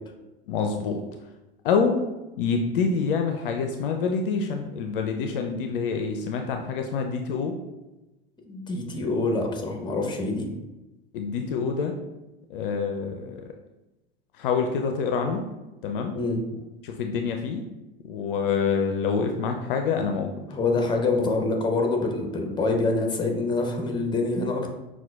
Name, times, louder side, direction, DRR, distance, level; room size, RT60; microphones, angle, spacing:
voice 1, 0.5-1.0 1.6-2.0 2.4-7.6 11.1-11.9 12.5-13.4 14.4-15.4 15.8-16.1 16.8-17.6 18.1-20.3, left 5 dB, 60° left, 4 dB, 0.4 m, -26 dB
voice 2, 8.5-10.5 16.1-16.4 20.5-24.7, left 3 dB, 15° left, 2 dB, 0.7 m, -25 dB
5.6 x 2.3 x 2.3 m, 1.0 s
figure-of-eight pair, 85°, 30 cm